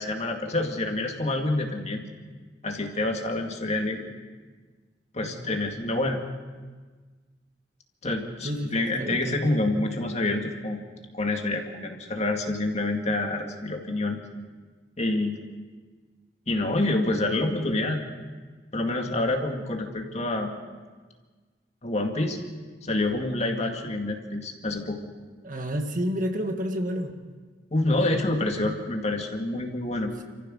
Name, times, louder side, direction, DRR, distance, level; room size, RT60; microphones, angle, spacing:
voice 1, 0.0-2.0 2.6-4.1 5.1-6.2 8.0-10.8 11.1-14.2 15.0-15.4 16.5-18.0 18.7-20.5 21.8-22.4 22.8-25.0 27.7-30.1, left 2 dB, 40° left, 3 dB, 2.2 m, -27 dB
voice 2, 5.2-5.6 8.4-9.6 25.4-27.1, equal, 50° right, 4 dB, 1.8 m, -30 dB
28.0 x 15.0 x 6.3 m, 1.4 s
head